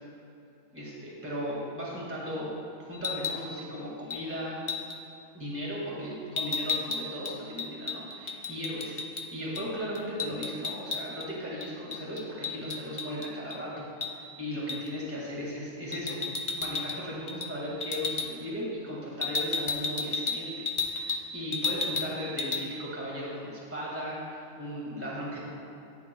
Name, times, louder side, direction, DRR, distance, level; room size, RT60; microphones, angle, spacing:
voice 1, 0.7-4.6 5.3-13.9 14.4-16.2 16.5-25.4, equal, 10° right, -5 dB, 1.9 m, -36 dB
sound 1, 2.9-3.4 4.1-4.3 4.7-5.0 6.4-9.3 9.5-9.7 9.9-11.3 11.6-13.6 14.0-14.1 14.7-14.9 15.9-17.0 17.3-17.5 17.8-18.3 19.2-21.2 21.5-22.1 22.4-22.6, left 4 dB, 50° left, 0.3 m, -32 dB
14.0 x 9.6 x 2.3 m, 2.7 s
omnidirectional pair, 1.4 m